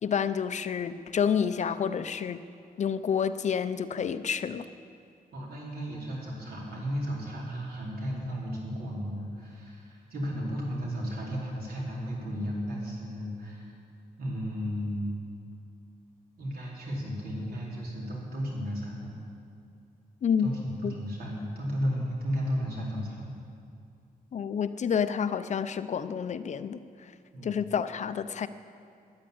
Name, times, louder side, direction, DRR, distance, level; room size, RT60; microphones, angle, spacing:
voice 1, 0.0-2.4 2.8-4.7 20.2-20.5 20.8-20.9 24.3-27.1 27.4-28.5, left 7 dB, 50° left, 12 dB, 0.5 m, -29 dB
voice 2, 5.3-13.7 14.2-15.3 16.4-19.1 20.4-23.3 27.3-27.6, equal, 80° right, -3 dB, 4.3 m, -34 dB
14.0 x 9.8 x 10.0 m, 2.4 s
wide cardioid pair, 175°, 16 cm